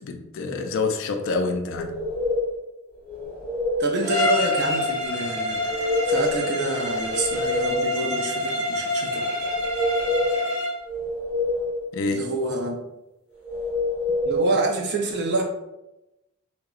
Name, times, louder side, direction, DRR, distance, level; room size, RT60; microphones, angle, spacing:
voice 1, 0.0-2.0 11.9-12.3, left 3 dB, 60° left, 0.3 m, -27 dB
sound 1, 1.7-2.6 3.0-3.9 5.5-6.5 6.8-8.0 9.4-10.4 10.8-11.9 13.4-14.5, left 1 dB, 5° right, 1.2 m, -26 dB
voice 2, 3.8-9.3 12.1-12.8 14.2-15.4, right 2 dB, 50° right, 0.5 m, -27 dB
Bowed string instrument, 4.0-10.8, left 2 dB, 20° left, 0.6 m, -27 dB
2.7 x 2.1 x 2.3 m
head